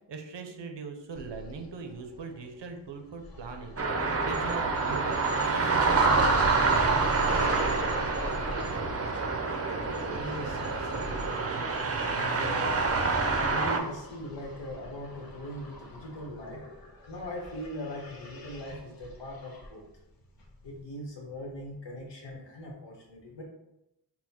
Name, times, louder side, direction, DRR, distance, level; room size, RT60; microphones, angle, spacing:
voice 1, 0.1-8.1, right 4 dB, 80° right, 5 dB, 0.7 m, -41 dB
sound 1, 1.2-20.8, left 1 dB, 55° left, 0.8 m, -43 dB
sound 2, 3.8-13.8, right 4 dB, 35° right, 0.6 m, -27 dB
sound 3, 7.3-12.9, left 2 dB, 30° left, 0.6 m, -46 dB
voice 2, 10.1-11.5 12.1-12.8 13.4-16.6 17.1-19.8 20.6-23.4, left 1 dB, 80° left, -1 dB, 1.1 m, -40 dB
4.1 x 2.2 x 4.1 m, 0.89 s
wide cardioid pair, 55°, 42 cm